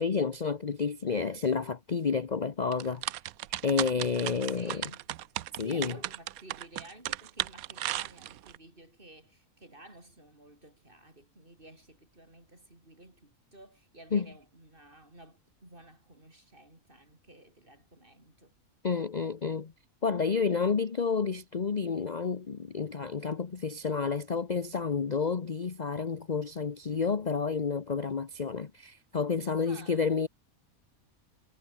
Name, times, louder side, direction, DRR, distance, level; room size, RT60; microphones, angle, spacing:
voice 1, 0.0-3.0 3.6-4.8 5.6-6.0 14.1-14.3 18.8-19.7 20.0-30.3, left 5 dB, 35° left, 0.9 m, -30 dB
sound 1, 2.7-8.6, right 14 dB, 80° right, 1.1 m, -35 dB
voice 2, 4.3-5.1 5.6-18.5 29.6-30.1, right 1 dB, 35° right, 6.3 m, -53 dB
omnidirectional pair, 1.5 m